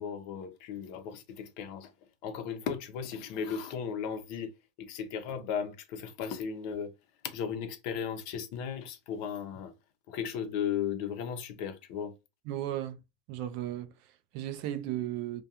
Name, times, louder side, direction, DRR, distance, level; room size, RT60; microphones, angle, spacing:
voice 1, 0.0-1.9 2.2-6.9 7.2-9.7 10.1-12.1, left 7 dB, 55° left, 0.6 m, -36 dB
voice 2, 12.5-13.0 13.3-15.4, right 12 dB, 55° right, 0.3 m, -35 dB
2.3 x 2.2 x 2.8 m
supercardioid pair, 150°, 0 cm